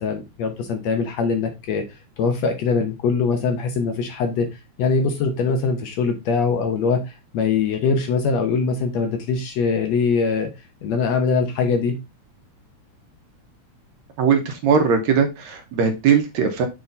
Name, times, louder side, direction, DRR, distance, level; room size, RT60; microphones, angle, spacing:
voice 1, 0.0-1.8 2.2-4.5 4.8-10.5 10.8-11.9, left 5 dB, 65° left, 5 dB, 1.9 m, -22 dB
voice 2, 14.2-16.7, right 6 dB, 70° right, 5 dB, 2.1 m, -19 dB
7.0 x 3.7 x 3.8 m, 0.23 s
omnidirectional pair, 3.5 m